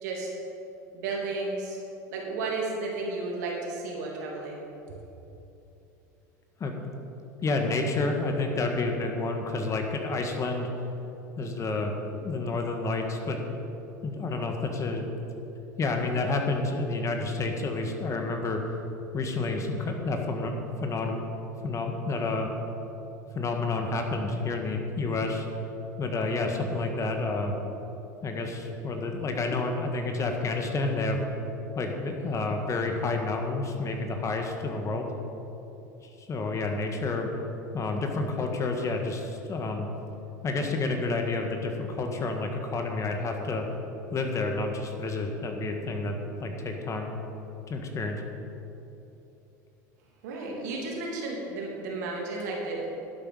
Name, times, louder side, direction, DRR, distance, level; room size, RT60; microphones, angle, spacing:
voice 1, 0.9-1.8 2.1-4.6 50.2-52.8, right 3 dB, 75° right, -2 dB, 2.9 m, -33 dB
voice 2, 7.4-10.7 11.4-13.4 14.0-15.1 15.8-18.6 19.1-20.6 20.8-21.2 21.6-22.5 23.3-25.5 26.0-27.8 28.2-31.2 31.8-35.1 36.3-37.3 37.7-39.9 40.4-43.6 44.1-47.1 47.7-48.2, left 3 dB, 35° left, 3 dB, 1.6 m, -29 dB
11.5 x 8.7 x 5.6 m, 3.0 s
hypercardioid pair, 80°, 9 cm